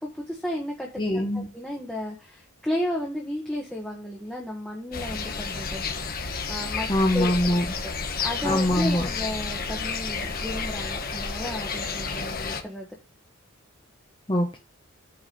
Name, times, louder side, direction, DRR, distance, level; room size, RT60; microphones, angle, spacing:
voice 1, 0.0-0.9 1.1-5.8 6.5-6.9 7.1-7.3 7.8-7.9 8.2-12.9, left 1 dB, 5° left, -2 dB, 1.4 m, -33 dB
voice 2, 1.0-1.5 6.9-7.6 8.4-9.1 14.3-14.6, left 1 dB, 20° left, 2 dB, 1.0 m, -23 dB
sound 1, 4.9-12.6, left 4 dB, 40° left, 1.4 m, -31 dB
8.7 x 4.7 x 7.0 m, 0.30 s
head